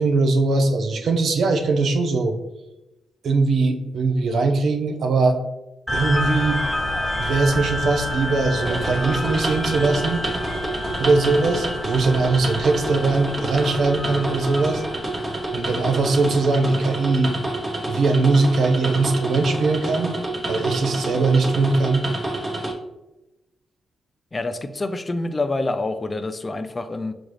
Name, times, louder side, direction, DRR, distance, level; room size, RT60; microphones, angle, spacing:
voice 1, 0.0-2.3 3.2-5.4 5.9-6.6 7.2-10.2 11.0-14.8 15.5-17.4 17.9-20.2 20.5-22.1, right 3 dB, 70° right, 4 dB, 0.6 m, -20 dB
sound 1, 5.9-16.8, left 1 dB, ahead, 1.4 m, -29 dB
sound 2, 8.7-22.7, right 1 dB, 30° right, 0.9 m, -28 dB
voice 2, 24.3-27.1, left 2 dB, 30° left, 9 dB, 0.4 m, -27 dB
5.9 x 2.4 x 3.3 m, 0.97 s
cardioid pair, 70°, 0 cm